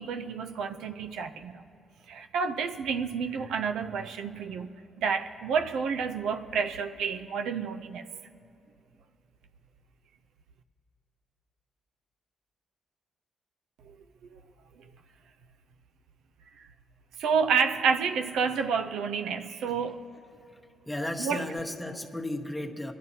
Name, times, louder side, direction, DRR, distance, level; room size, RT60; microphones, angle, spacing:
voice 1, 0.0-1.6 2.1-8.0 13.8-14.0 14.3-14.4 16.6-16.7 17.2-20.1 21.2-21.4, right 6 dB, 85° right, 0.5 m, -29 dB
voice 2, 20.8-22.9, left 1 dB, 5° left, 1.0 m, -35 dB
26.5 x 10.5 x 2.8 m
cardioid pair, 95°, 0 cm